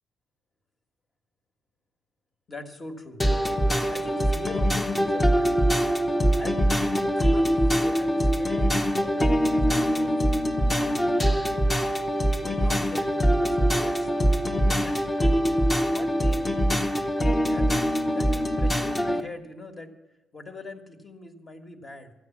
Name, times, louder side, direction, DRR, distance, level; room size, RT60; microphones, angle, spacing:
voice 1, 2.5-3.2 3.9-5.8 6.3-10.2 10.7-11.5 11.9-14.1 14.7-15.0 15.8-16.6 17.5-19.9 20.3-22.1, left 2 dB, 35° left, 5 dB, 1.6 m, -42 dB
sound 1, 3.2-19.2, equal, 15° left, 0.9 m, -23 dB
13.0 x 9.3 x 7.2 m, 1.0 s
cardioid pair, 90°, 0 cm